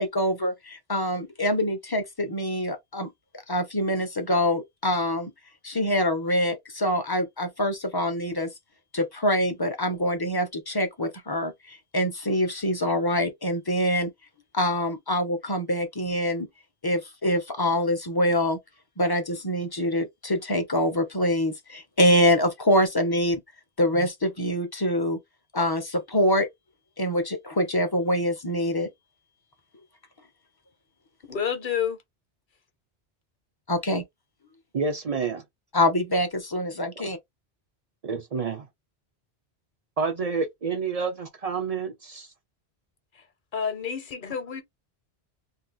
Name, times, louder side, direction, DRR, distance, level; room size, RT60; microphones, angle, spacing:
voice 1, 0.0-3.1 3.5-5.3 5.6-8.5 8.9-14.1 14.5-16.5 16.8-18.6 19.0-23.4 23.8-25.2 25.5-26.5 27.0-28.9 33.7-34.0 35.7-37.2, equal, 25° left, 0.6 m, -25 dB
voice 2, 31.2-32.0 43.5-44.6, left 7 dB, 55° left, 1.0 m, -29 dB
voice 3, 34.7-35.4 37.0-37.1 38.0-38.7 40.0-42.3, right 5 dB, 45° right, 0.6 m, -29 dB
2.7 x 2.3 x 3.5 m
omnidirectional pair, 1.1 m